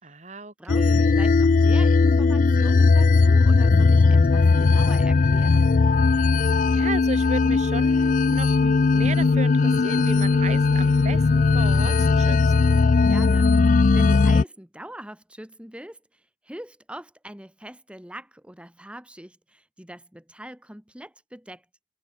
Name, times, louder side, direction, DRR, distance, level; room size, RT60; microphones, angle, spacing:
voice 1, 0.0-1.1 6.7-12.4, right 3 dB, 40° right, 4.0 m, -35 dB
voice 2, 0.6-5.8 13.0-21.6, right 1 dB, 5° right, 2.4 m, -42 dB
sound 1, 0.7-14.4, left 4 dB, 45° left, 0.4 m, -18 dB
Wind instrument woodwind instrument, 8.9-13.6, right 2 dB, 80° right, 5.0 m, -46 dB
head